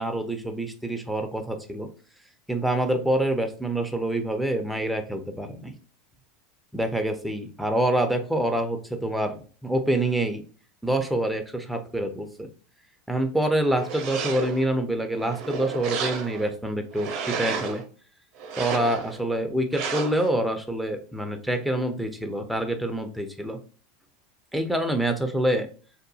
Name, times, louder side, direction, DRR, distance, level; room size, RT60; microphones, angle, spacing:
voice 1, 0.0-1.9 2.5-5.7 6.7-10.4 10.8-12.5 13.1-17.8 18.6-23.6 24.5-25.7, right 1 dB, ahead, 5 dB, 0.4 m, -26 dB
sound 1, 13.8-14.7 15.2-16.5 16.9-17.8 18.4-19.2 19.7-20.3, right 5 dB, 60° right, 0.6 m, -32 dB
2.8 x 2.0 x 2.6 m, 0.39 s
hypercardioid pair, 110°, 0 cm